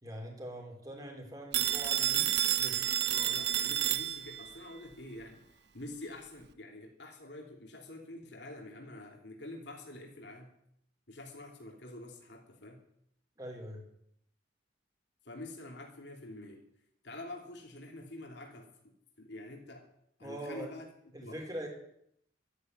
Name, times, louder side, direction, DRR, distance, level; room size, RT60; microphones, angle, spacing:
voice 1, 0.0-2.9 13.4-13.8 20.2-20.7 21.1-21.7, equal, 20° right, 1 dB, 4.0 m, -43 dB
Telephone, 1.5-4.5, right 11 dB, 65° right, 0.9 m, -30 dB
voice 2, 3.1-5.4 5.7-10.5 11.1-12.8 15.2-16.6 17.0-19.9 20.2-20.8 21.2-21.4, left 1 dB, 65° left, 1 dB, 2.9 m, -47 dB
13.5 x 9.9 x 9.3 m, 0.73 s
head